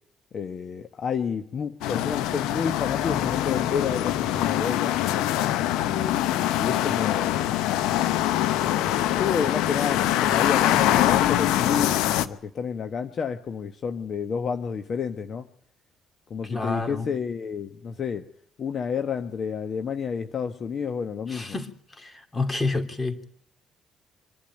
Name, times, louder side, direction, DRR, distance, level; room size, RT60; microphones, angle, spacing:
voice 1, 0.3-5.0 5.8-7.5 8.6-8.8 9.1-15.5 16.3-18.3 18.6-21.6, left 6 dB, 55° left, 1.2 m, -30 dB
sound 1, 1.8-12.3, left 13 dB, 75° left, 0.8 m, -24 dB
voice 2, 16.5-17.1 21.3-23.2, left 3 dB, 30° left, 3.0 m, -29 dB
25.0 x 12.0 x 9.0 m
hypercardioid pair, 50°, 0 cm